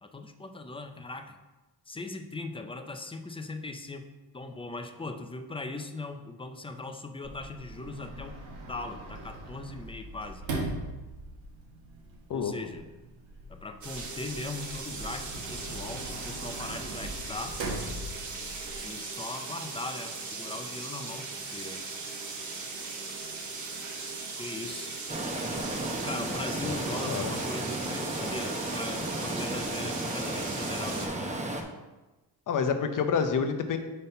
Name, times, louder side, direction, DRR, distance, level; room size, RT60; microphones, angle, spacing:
voice 1, 0.0-1.4 1.9-4.1 4.3-8.3 8.7-10.4 12.3-12.9 13.5-17.6 18.8-21.8 24.4-25.0 26.0-31.4, left 2 dB, 15° left, 6 dB, 0.3 m, -39 dB
Sliding door, 7.2-18.8, right 2 dB, 90° right, 1.7 m, -40 dB
sound 1, 13.8-31.1, right 4 dB, 40° right, 1.1 m, -39 dB
Stream, 25.1-31.6, right 1 dB, 15° right, 0.7 m, -34 dB
voice 2, 32.5-33.8, left 6 dB, 45° left, 7 dB, 0.7 m, -28 dB
5.4 x 4.1 x 5.5 m, 1.1 s
cardioid pair, 135°, 44 cm